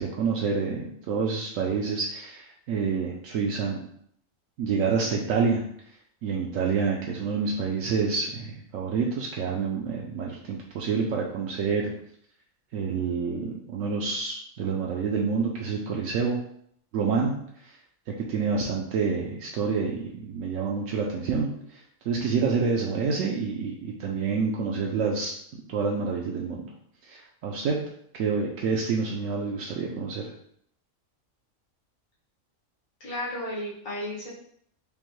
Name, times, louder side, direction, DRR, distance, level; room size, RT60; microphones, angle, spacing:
voice 1, 0.0-3.8 4.6-5.6 6.2-11.9 12.7-16.4 16.9-17.4 17.6-17.8 18.2-25.3 25.7-26.6 27.0-27.8 28.1-30.2, right 5 dB, 75° right, -2 dB, 0.9 m, -28 dB
voice 2, 33.0-34.3, left 1 dB, 80° left, -6 dB, 1.6 m, -33 dB
5.2 x 2.1 x 3.1 m, 0.66 s
omnidirectional pair, 1.4 m